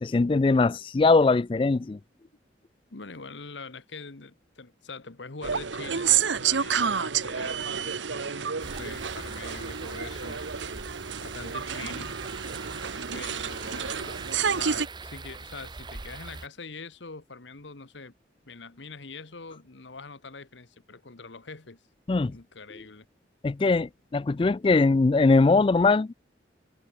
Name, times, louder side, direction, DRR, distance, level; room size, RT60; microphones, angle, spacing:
voice 1, 0.0-2.0 22.1-22.4 23.4-26.1, left 3 dB, 30° left, 0.3 m, -21 dB
voice 2, 2.9-10.4 11.2-12.2 13.1-18.1 18.5-21.8 22.2-23.1, left 4 dB, 80° left, 1.4 m, -43 dB
sound 1, 5.4-14.9, right 7 dB, 85° right, 1.0 m, -29 dB
sound 2, 8.6-16.5, right 3 dB, 25° right, 0.9 m, -42 dB
head